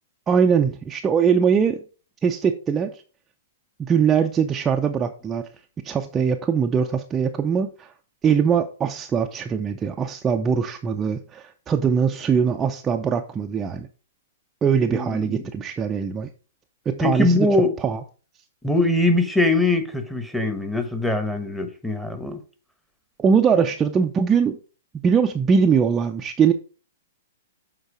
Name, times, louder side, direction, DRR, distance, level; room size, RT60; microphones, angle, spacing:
voice 1, 0.3-1.8 2.2-3.0 3.8-5.5 5.8-7.9 8.2-13.9 14.6-16.3 16.9-17.5 17.8-18.0 23.2-24.6 24.9-26.5, right 6 dB, 20° right, 0.5 m, -21 dB
voice 2, 14.9-15.4 17.0-17.7 18.6-22.4, left 2 dB, ahead, 1.1 m, -22 dB
8.0 x 4.0 x 4.9 m
hypercardioid pair, 120°, 0 cm